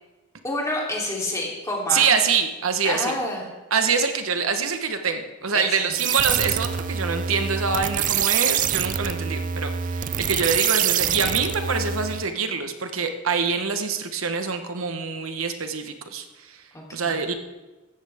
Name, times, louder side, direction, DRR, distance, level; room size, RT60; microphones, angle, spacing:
voice 1, 0.4-2.0 2.8-3.5 5.5-6.0 16.7-17.2, left 1 dB, 15° left, -3 dB, 3.2 m, -28 dB
voice 2, 1.9-3.1 3.7-16.6 16.9-17.3, right 5 dB, 80° right, 6 dB, 1.1 m, -25 dB
sound 1, 5.9-12.3, right 9 dB, 40° right, 0.5 m, -25 dB
16.0 x 13.5 x 3.6 m, 1.1 s
head